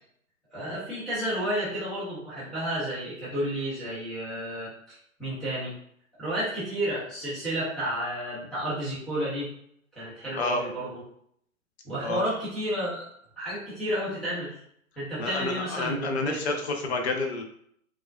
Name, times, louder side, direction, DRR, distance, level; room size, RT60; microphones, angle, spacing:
voice 1, 0.5-5.8 6.2-9.5 10.0-11.0 11.8-13.1 13.4-14.6 15.0-16.6, right 1 dB, ahead, -12 dB, 0.4 m, -31 dB
voice 2, 12.0-12.4 15.2-17.4, left 3 dB, 50° left, 3 dB, 0.8 m, -29 dB
4.9 x 2.5 x 2.2 m, 0.67 s
figure-of-eight pair, 120°, 43 cm